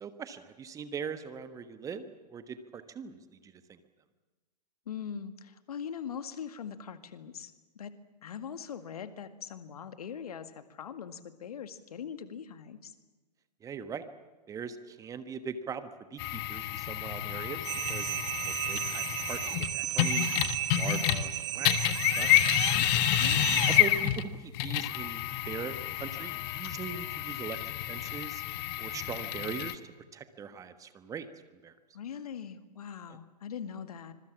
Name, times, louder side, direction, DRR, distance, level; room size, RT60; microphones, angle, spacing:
voice 1, 0.0-3.8 13.6-14.0 14.5-18.1 18.4-20.3 20.7-21.7 22.2-22.5 23.7-27.6 27.9-28.4 28.8-29.8 30.1-31.3 31.6-31.7, right 6 dB, 15° right, 11 dB, 1.3 m, -41 dB
voice 2, 4.9-8.0 8.2-12.9 22.4-22.9 23.2-23.7 31.9-34.1, left 7 dB, 60° left, 10 dB, 2.0 m, -42 dB
sound 1, 16.2-21.3 21.6-29.7, left 14 dB, 35° left, 1.4 m, -29 dB
sound 2, 17.6-23.8, right 14 dB, 45° right, 2.0 m, -34 dB
25.5 x 23.0 x 7.3 m, 1.2 s
figure-of-eight pair, 115°, 21 cm